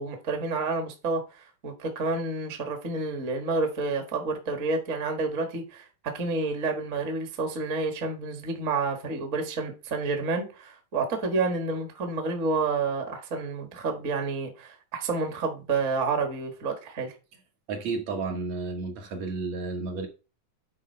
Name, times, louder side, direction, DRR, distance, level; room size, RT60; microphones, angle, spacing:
voice 1, 0.0-5.9 6.1-17.1, right 3 dB, 35° right, 1.2 m, -29 dB
voice 2, 17.7-20.1, right 3 dB, 65° right, 2.3 m, -32 dB
9.8 x 4.3 x 4.4 m
omnidirectional pair, 3.5 m